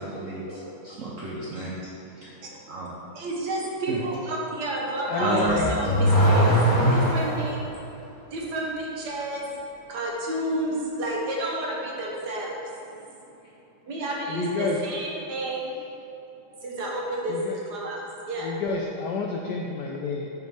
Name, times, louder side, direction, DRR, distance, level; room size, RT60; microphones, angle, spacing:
voice 1, 0.0-1.7 2.2-2.3 2.7-2.9 3.9-4.0 5.2-5.7, right 2 dB, 90° right, -5 dB, 0.7 m, -30 dB
voice 2, 3.1-6.5 6.9-7.6 8.3-9.5 9.9-12.5 13.9-15.7 16.6-17.4 17.7-18.0 18.3-18.5, right 1 dB, 60° right, -3 dB, 1.3 m, -30 dB
voice 3, 5.0-5.8 14.3-14.8 17.3-17.5 18.4-20.3, left 4 dB, 80° left, 0 dB, 0.9 m, -29 dB
Car / Accelerating revving vroom, 5.3-7.6, equal, 50° left, 1.3 m, -20 dB
5.3 x 5.1 x 4.7 m, 2.9 s
omnidirectional pair, 2.3 m